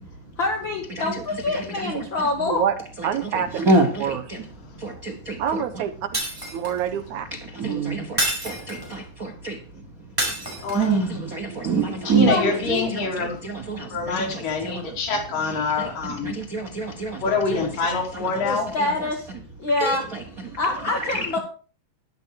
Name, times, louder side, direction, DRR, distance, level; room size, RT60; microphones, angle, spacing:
voice 1, 0.4-2.6 12.1-12.9 18.4-19.3 19.6-20.1 20.6-21.4, left 2 dB, 45° left, 1.9 m, -26 dB
voice 2, 2.4-2.8 3.0-4.2 5.4-6.2 6.5-7.3, right 8 dB, 70° right, 2.3 m, -26 dB
voice 3, 3.6-4.4 4.8-5.6 7.3-9.5 10.7-12.3 12.9-14.9 16.2-17.2 17.5-17.6 19.8-20.0 21.0-21.4, right 3 dB, 90° right, 0.7 m, -26 dB
Shatter, 6.1-6.9 8.2-9.0 10.2-11.0, right 1 dB, 5° right, 4.9 m, -27 dB
voice 4, 10.6-11.1 12.0-13.4 13.9-16.3 17.2-18.7, left 4 dB, 75° left, 4.4 m, -25 dB
12.0 x 11.0 x 4.6 m
omnidirectional pair, 3.8 m